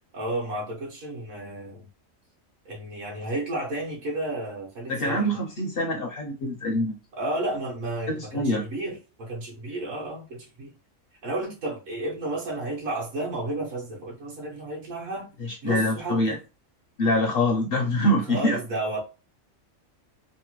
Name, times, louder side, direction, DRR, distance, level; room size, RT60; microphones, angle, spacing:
voice 1, 0.1-1.9 2.6-5.3 7.1-10.7 11.2-15.3 15.6-16.4 18.2-19.0, right 2 dB, 70° right, 1.3 m, -32 dB
voice 2, 4.9-7.0 8.1-8.6 15.4-16.4 17.0-18.6, left 1 dB, 60° left, 0.6 m, -25 dB
3.1 x 2.0 x 2.9 m
omnidirectional pair, 1.4 m